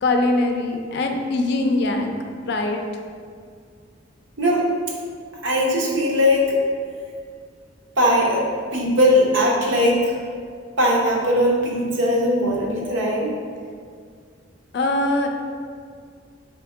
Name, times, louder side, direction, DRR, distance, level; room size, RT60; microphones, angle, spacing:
voice 1, 0.0-2.1 2.4-2.8 14.7-15.3, left 2 dB, 60° left, 4 dB, 0.4 m, -22 dB
voice 2, 5.4-6.6 8.0-10.2 10.8-13.4, equal, 80° right, -2 dB, 0.9 m, -19 dB
3.5 x 2.8 x 4.7 m, 2.1 s
head